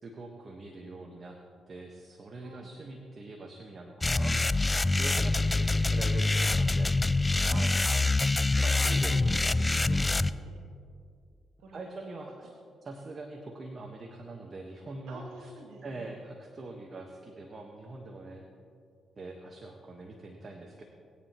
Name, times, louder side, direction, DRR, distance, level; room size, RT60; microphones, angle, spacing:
voice 1, 0.0-1.4 1.7-4.4 4.8-6.9 7.5-7.7 8.6-9.2 9.9-10.1 11.7-12.5 12.8-15.5 15.8-18.4 19.2-20.8, right 2 dB, 45° right, 2 dB, 1.3 m, -43 dB
voice 2, 2.4-2.7 5.4-5.9 7.4-7.8 8.5-10.6 11.6-12.1 15.1-16.1, right 3 dB, 90° right, 0 dB, 2.4 m, -49 dB
sound 1, 4.0-10.3, left 2 dB, 20° left, 0.4 m, -25 dB
20.5 x 9.4 x 3.0 m, 2.3 s
supercardioid pair, 65°, 0 cm